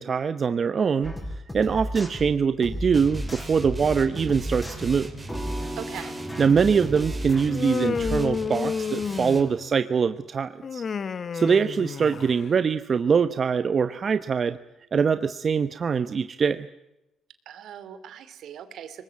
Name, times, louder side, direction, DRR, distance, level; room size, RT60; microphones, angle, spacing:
voice 1, 0.0-5.1 6.4-10.8 11.3-14.6 14.9-16.7, right 6 dB, 45° right, 11 dB, 0.9 m, -23 dB
sound 1, 1.0-8.2, equal, 10° left, 6.7 m, -34 dB
sound 2, 2.9-9.5, right 2 dB, 20° right, 4.6 m, -40 dB
voice 2, 5.8-6.1 17.5-19.0, right 9 dB, 75° right, 12 dB, 2.7 m, -40 dB
Human voice, 7.5-9.7 10.6-12.5, left 6 dB, 45° left, 1.0 m, -30 dB
23.5 x 20.0 x 9.5 m, 0.91 s
cardioid pair, 90°, 0 cm